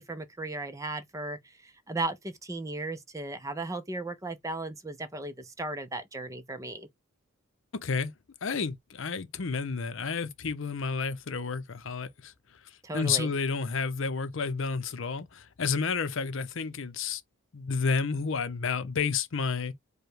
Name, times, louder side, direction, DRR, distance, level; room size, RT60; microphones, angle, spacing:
voice 1, 0.0-6.9 12.8-13.3, right 2 dB, 15° right, 0.5 m, -36 dB
voice 2, 7.7-8.1 8.4-12.3 12.9-17.2 17.5-19.7, left 5 dB, 60° left, 0.6 m, -30 dB
4.9 x 2.2 x 4.8 m
head